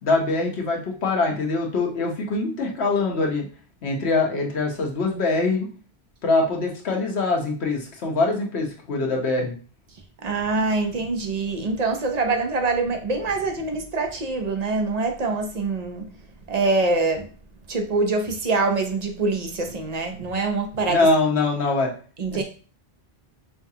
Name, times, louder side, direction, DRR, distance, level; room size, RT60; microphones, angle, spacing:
voice 1, 0.0-3.4 3.8-5.7 6.2-9.6 20.9-21.9, left 3 dB, 80° left, 0 dB, 1.2 m, -23 dB
voice 2, 10.2-16.1 16.5-17.3 17.7-21.1 22.2-22.4, right 3 dB, 45° right, 4 dB, 0.7 m, -24 dB
5.7 x 2.3 x 2.7 m, 0.39 s
omnidirectional pair, 1.1 m